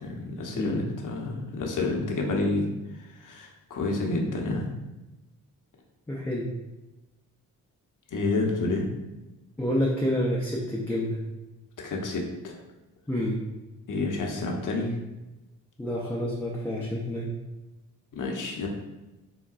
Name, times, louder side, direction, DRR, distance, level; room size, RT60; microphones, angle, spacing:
voice 1, 0.0-2.7 3.0-4.7 8.1-8.9 11.8-12.5 13.9-15.0 18.1-18.7, left 2 dB, 45° left, 1 dB, 0.7 m, -29 dB
voice 2, 6.1-6.5 9.6-11.2 13.1-13.4 15.8-17.3, equal, 5° left, -5 dB, 0.4 m, -28 dB
3.7 x 2.2 x 2.3 m, 1.1 s
supercardioid pair, 40°, 43 cm